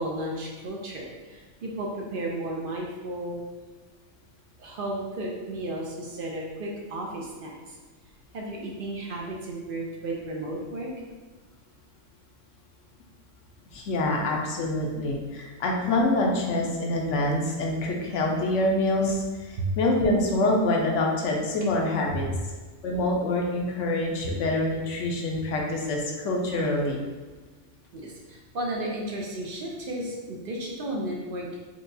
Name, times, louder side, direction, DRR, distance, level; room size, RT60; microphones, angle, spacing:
voice 1, 0.0-3.4 4.6-7.8 8.3-10.9 19.6-19.7 27.9-31.6, right 1 dB, 55° right, -2 dB, 0.6 m, -33 dB
voice 2, 13.7-22.3 22.8-27.0, left 1 dB, 80° left, 0 dB, 1.0 m, -26 dB
4.5 x 2.2 x 2.6 m, 1.3 s
omnidirectional pair, 1.3 m